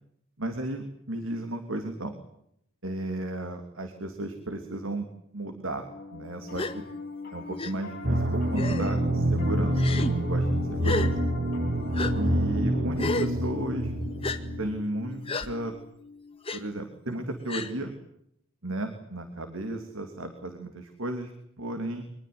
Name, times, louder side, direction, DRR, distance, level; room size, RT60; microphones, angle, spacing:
voice 1, 0.4-2.2 2.8-5.1 5.3-6.8 7.3-11.1 12.2-13.9 14.6-15.7 16.5-17.9 18.6-21.3 21.6-22.0, right 1 dB, 65° right, 6 dB, 3.2 m, -34 dB
Piano, 5.7-17.2, left 3 dB, 45° left, 7.7 m, -40 dB
Gasp, 6.5-6.7 7.6-7.7 8.6-9.0 9.8-10.1 10.8-11.1 11.9-12.1 13.0-13.3 14.2-14.4 15.3-15.5 16.5-16.6 17.5-17.7, left 3 dB, 25° left, 2.0 m, -30 dB
sound 1, 8.0-14.7, right 1 dB, 45° right, 2.4 m, -27 dB
24.5 x 21.5 x 9.7 m, 0.75 s
head